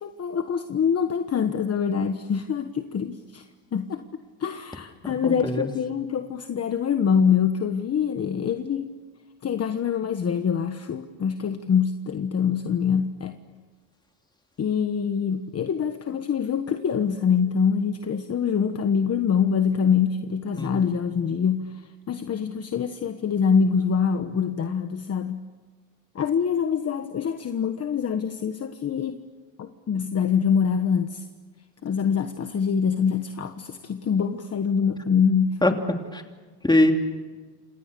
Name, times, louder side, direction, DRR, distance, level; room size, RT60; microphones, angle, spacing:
voice 1, 0.0-3.4 3.7-4.0 4.4-8.9 9.4-13.4 14.6-21.8 22.1-25.4 26.1-29.2 29.6-31.2 31.8-35.8, left 7 dB, 35° left, 7 dB, 1.3 m, -25 dB
voice 2, 5.0-5.6 20.5-20.8 35.6-35.7 36.1-36.2 36.6-36.9, left 1 dB, 10° left, 4 dB, 3.0 m, -22 dB
28.5 x 27.0 x 6.9 m, 1.3 s
cardioid pair, 130°, 43 cm